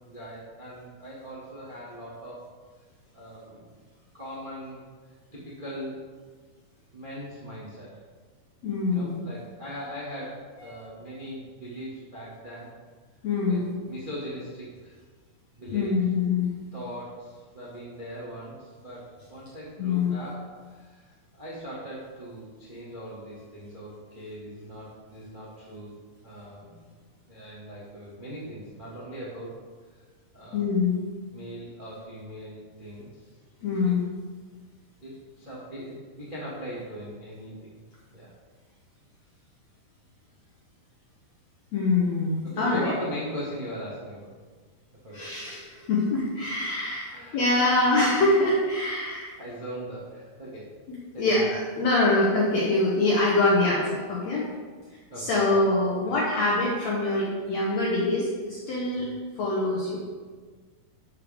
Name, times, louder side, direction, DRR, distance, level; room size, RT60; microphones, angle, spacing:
voice 1, 0.1-2.5 3.1-3.8 4.1-4.8 5.3-6.0 6.9-7.9 8.9-12.7 13.5-13.6 13.9-14.9 15.5-15.9 16.7-25.9 26.2-26.9 27.3-29.6 29.9-30.0 30.3-30.7 31.3-33.3 33.8-33.9 35.0-37.7 38.1-38.3 42.4-44.3 45.0-45.3 47.1-47.6 49.4-50.7 51.1-51.5 55.1-55.6 56.0-56.1 58.9-59.1, equal, 30° right, -8 dB, 0.8 m, -40 dB
voice 2, 8.6-9.2 13.2-13.7 15.7-16.7 19.8-20.1 30.5-31.0 33.6-34.0 41.7-42.9 45.1-47.1 47.3-49.4 51.2-54.5 55.2-59.1 59.4-60.0, left 2 dB, 80° left, -4 dB, 1.5 m, -24 dB
12.0 x 6.7 x 3.6 m, 1.5 s
omnidirectional pair, 4.8 m